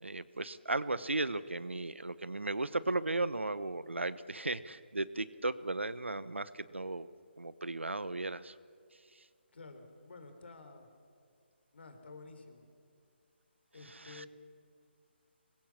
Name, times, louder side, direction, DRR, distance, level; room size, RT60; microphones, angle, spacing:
voice 1, 0.0-7.1 7.4-8.5 13.9-14.3, right 2 dB, 90° right, 16 dB, 1.0 m, -36 dB
voice 2, 9.5-10.9 11.7-12.7 13.7-14.3, left 3 dB, 65° left, 7 dB, 3.8 m, -51 dB
24.5 x 21.0 x 7.3 m, 2.4 s
figure-of-eight pair, 150°, 6 cm